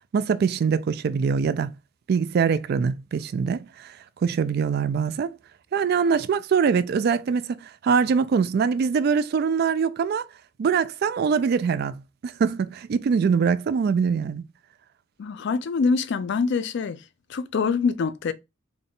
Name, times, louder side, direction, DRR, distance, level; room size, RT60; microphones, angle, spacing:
voice 1, 0.1-1.7 2.1-4.0 4.2-5.3 5.7-10.2 10.6-14.4, right 6 dB, 55° right, 0.3 m, -23 dB
voice 2, 15.2-17.0 17.3-18.3, left 5 dB, 60° left, 0.4 m, -25 dB
3.6 x 2.3 x 3.8 m
head